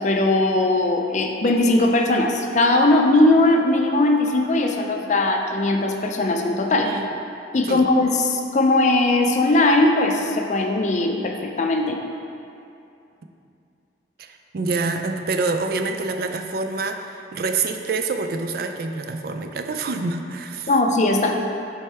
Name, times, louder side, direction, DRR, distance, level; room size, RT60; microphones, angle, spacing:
voice 1, 0.0-7.0 7.5-12.0 20.7-21.3, left 2 dB, 40° left, 3 dB, 0.5 m, -19 dB
voice 2, 14.2-20.7, right 3 dB, 55° right, 6 dB, 0.4 m, -26 dB
7.5 x 4.4 x 3.4 m, 2.7 s
head